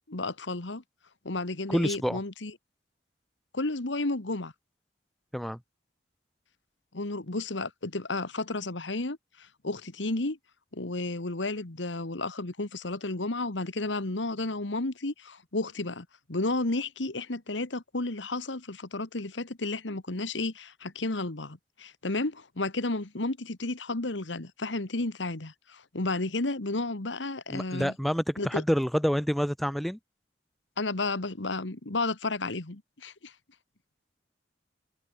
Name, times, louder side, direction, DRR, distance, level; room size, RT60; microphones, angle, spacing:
voice 1, 0.1-0.8 1.2-2.5 3.5-4.5 6.9-10.4 10.7-27.9 28.4-28.6 30.8-33.3, left 2 dB, 80° left, 1.7 m, -32 dB
voice 2, 1.7-2.2 5.3-5.6 27.5-30.0, equal, ahead, 0.7 m, -27 dB
open air
head